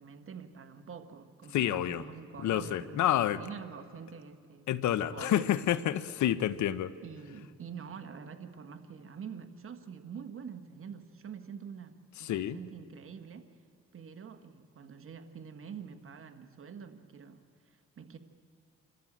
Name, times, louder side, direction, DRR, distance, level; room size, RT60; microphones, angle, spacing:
voice 1, 0.0-4.7 5.1-5.5 7.0-13.5 13.9-18.2, right 6 dB, 45° right, 8 dB, 1.6 m, -46 dB
voice 2, 1.5-2.1 2.4-3.4 4.7-6.9 12.2-12.6, left 11 dB, 75° left, 16 dB, 0.8 m, -29 dB
27.5 x 13.5 x 8.7 m, 2.2 s
cardioid pair, 90°, 30 cm